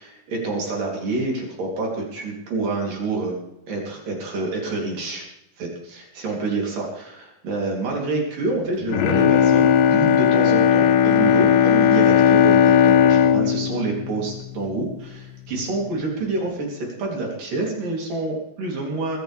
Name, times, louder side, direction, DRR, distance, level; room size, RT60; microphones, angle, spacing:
voice 1, 0.0-3.4 3.7-5.2 5.6-19.2, right 3 dB, 85° right, -1 dB, 5.0 m, -27 dB
Bowed string instrument, 8.8-15.1 15.5-15.6, left 8 dB, 85° left, 2.7 m, -17 dB
22.5 x 13.0 x 3.5 m, 0.83 s
omnidirectional pair, 3.8 m